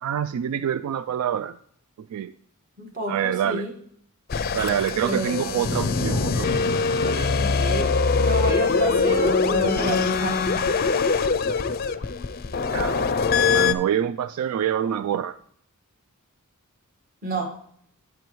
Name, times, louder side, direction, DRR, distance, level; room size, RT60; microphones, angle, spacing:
voice 1, 0.0-1.6 2.0-2.3 3.1-3.7 4.5-7.3 12.7-13.1 13.5-15.4, right 9 dB, 85° right, 15 dB, 0.3 m, -27 dB
voice 2, 2.8-3.7 5.0-5.6 7.4-7.9 8.2-10.5 17.2-17.5, right 1 dB, 40° right, 2 dB, 1.5 m, -29 dB
sound 1, 4.3-13.7, left 4 dB, 40° left, 0.4 m, -23 dB
10.5 x 7.5 x 3.1 m, 0.65 s
head